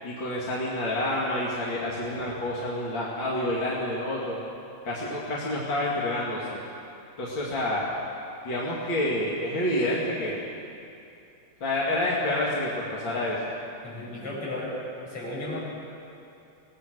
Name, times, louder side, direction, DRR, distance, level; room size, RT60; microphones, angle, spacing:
voice 1, 0.0-4.4 4.8-6.6 7.2-7.9 8.4-10.4 11.6-13.4, left 1 dB, 60° left, -5 dB, 3.2 m, -28 dB
voice 2, 13.8-14.7 15.0-15.6, left 2 dB, 90° left, -7 dB, 8.2 m, -34 dB
22.5 x 18.5 x 6.4 m, 2.7 s
omnidirectional pair, 2.4 m